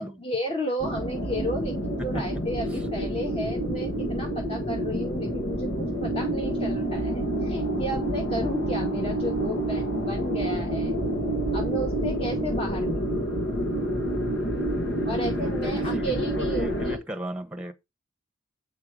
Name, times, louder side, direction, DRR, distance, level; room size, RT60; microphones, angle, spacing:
voice 1, 0.2-1.8 2.0-11.0 11.5-13.0 15.1-16.7, equal, 30° left, 2.2 m, -33 dB
sound 1, 0.8-17.0, right 1 dB, 60° left, 2.2 m, -28 dB
voice 2, 2.0-2.4 2.7-2.8 15.0-17.7, right 1 dB, 5° right, 1.3 m, -36 dB
8.7 x 5.9 x 4.9 m
head